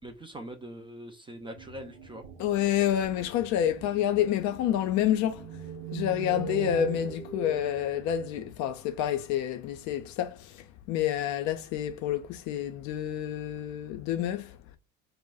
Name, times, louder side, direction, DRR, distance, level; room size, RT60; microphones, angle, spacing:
voice 1, 0.0-2.2, right 1 dB, 15° right, 0.3 m, -42 dB
sound 1, 1.5-8.5, right 6 dB, 80° right, 0.7 m, -41 dB
voice 2, 2.4-5.6 5.9-14.6, left 11 dB, 50° left, 0.4 m, -28 dB
2.2 x 2.1 x 3.5 m
hypercardioid pair, 65°, 38 cm